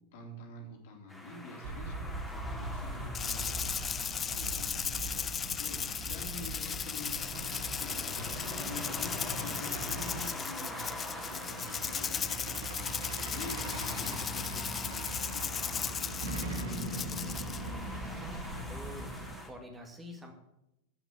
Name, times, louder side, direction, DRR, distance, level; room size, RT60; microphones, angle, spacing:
voice 1, 0.0-17.5, left 2 dB, 50° left, 1 dB, 3.4 m, -48 dB
sound 1, 1.1-19.5, left 1 dB, ahead, 2.6 m, -46 dB
Truck, 1.6-19.4, right 1 dB, 60° right, 2.3 m, -40 dB
Rattle (instrument), 3.1-17.7, left 7 dB, 20° left, 0.5 m, -37 dB
voice 2, 18.1-19.1 19.5-20.3, equal, 15° right, 3 dB, 2.1 m, -47 dB
15.0 x 6.0 x 8.1 m, 0.87 s
figure-of-eight pair, 90°, 0 cm